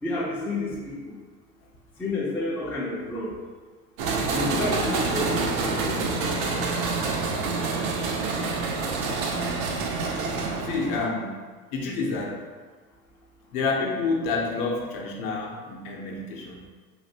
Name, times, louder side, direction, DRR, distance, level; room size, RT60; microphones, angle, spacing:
voice 1, 0.0-1.2 2.0-3.3 4.3-5.3 5.7-6.6, left 2 dB, 5° left, -6 dB, 0.5 m, -30 dB
sound 1, 4.0-11.1, right 3 dB, 60° right, 0.7 m, -27 dB
voice 2, 10.6-11.3 11.7-12.4 13.5-16.7, left 3 dB, 50° left, 0 dB, 0.8 m, -28 dB
3.3 x 2.5 x 2.8 m, 1.4 s
hypercardioid pair, 95°, 46 cm